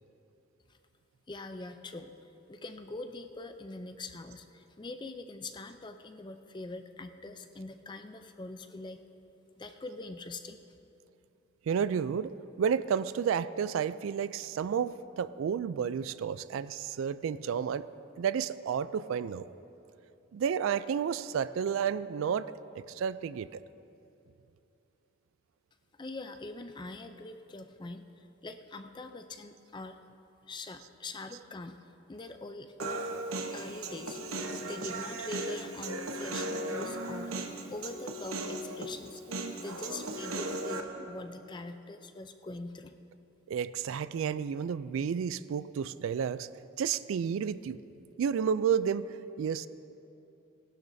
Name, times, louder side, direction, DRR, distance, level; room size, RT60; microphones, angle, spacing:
voice 1, 1.3-2.2 2.5-9.0 9.6-10.6 26.0-30.0 30.5-31.8 32.1-33.2 33.5-34.2 34.6-39.2 39.6-42.9, left 2 dB, 20° left, 8 dB, 0.4 m, -43 dB
voice 2, 11.7-12.3 12.6-17.8 18.2-19.4 20.3-23.5 43.5-46.5 46.8-47.8 48.2-49.7, right 7 dB, 70° right, 15 dB, 0.3 m, -31 dB
Human voice, 32.8-40.8, right 2 dB, 90° right, 1.0 m, -37 dB
19.0 x 12.0 x 2.7 m, 2.9 s
head